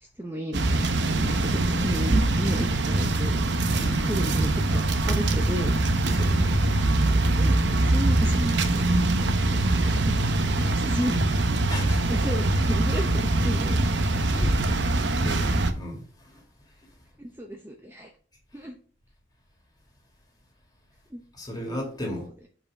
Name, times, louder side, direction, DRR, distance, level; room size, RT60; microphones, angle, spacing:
voice 1, 0.2-3.6 4.0-5.8 7.4-8.8 9.2-10.3 10.6-11.2 12.1-14.0 14.3-14.7 17.2-18.1 18.5-18.8 21.1-21.2, equal, 10° right, 0.8 m, -34 dB
sound 1, 0.5-15.7, right 2 dB, 75° right, 0.8 m, -23 dB
voice 2, 6.1-6.6 11.7-12.0 14.2-14.6 15.2-16.0 16.3-16.4 21.3-22.3, equal, 20° left, 2.2 m, -33 dB
5.6 x 4.7 x 5.3 m
head